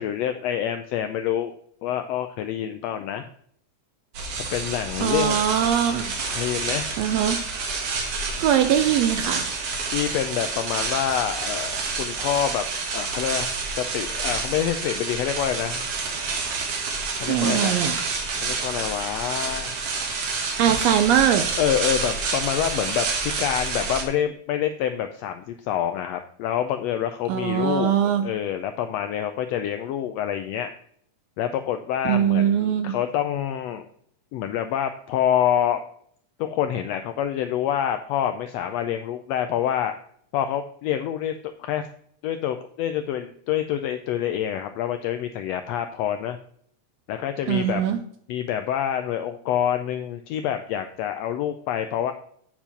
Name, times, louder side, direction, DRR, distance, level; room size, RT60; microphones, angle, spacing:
voice 1, 0.0-1.5 1.8-3.3 4.5-5.5 6.3-7.0 9.9-12.6 12.9-15.8 17.2-17.8 18.4-19.8 21.6-30.7 31.4-33.9 34.3-35.8 36.4-39.9 40.3-41.3 41.6-41.9 42.2-46.4 47.1-47.9 48.3-52.1, left 10 dB, 85° left, 8 dB, 1.5 m, -27 dB
sound 1, 4.1-24.0, right 4 dB, 60° right, 2.1 m, -28 dB
voice 2, 5.0-6.1 7.0-7.4 8.4-9.5 17.3-18.0 20.6-21.5 27.3-28.3 32.0-32.9 47.5-48.0, right 9 dB, 80° right, 9 dB, 1.6 m, -21 dB
8.6 x 4.5 x 5.7 m, 0.64 s
omnidirectional pair, 3.4 m